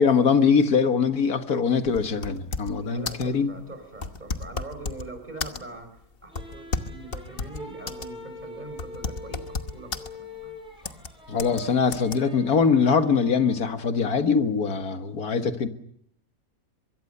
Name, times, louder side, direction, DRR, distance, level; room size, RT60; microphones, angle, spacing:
voice 1, 0.0-3.5 11.3-15.7, left 5 dB, 80° left, 8 dB, 2.0 m, -22 dB
sound 1, 1.9-2.8 3.1-3.3 4.0-5.1 5.4-5.8 6.4-8.1 8.4-8.5 8.8-10.1 10.8-11.1 11.4-11.6 11.9-12.2, left 4 dB, 40° left, 1.3 m, -32 dB
voice 2, 2.8-6.0 6.2-11.0, right 2 dB, 30° right, 8 dB, 4.5 m, -43 dB
sound 2, 6.3-13.8, left 2 dB, 5° right, 6.3 m, -44 dB
24.0 x 23.0 x 6.7 m, 0.70 s
omnidirectional pair, 1.6 m